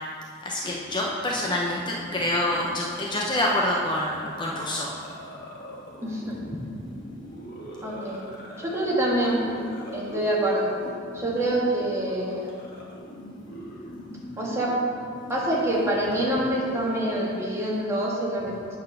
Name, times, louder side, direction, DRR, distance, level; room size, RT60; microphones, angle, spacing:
voice 1, 0.4-4.9, left 1 dB, 25° left, -3 dB, 0.6 m, -26 dB
sound 1, 0.6-17.8, equal, 50° left, 1.4 m, -41 dB
voice 2, 6.0-6.4 7.8-8.2 8.6-9.6 9.9-10.7 11.1-12.5 14.4-14.7 15.3-18.5, right 1 dB, 15° right, -5 dB, 1.5 m, -26 dB
9.1 x 4.2 x 5.9 m, 2.3 s
head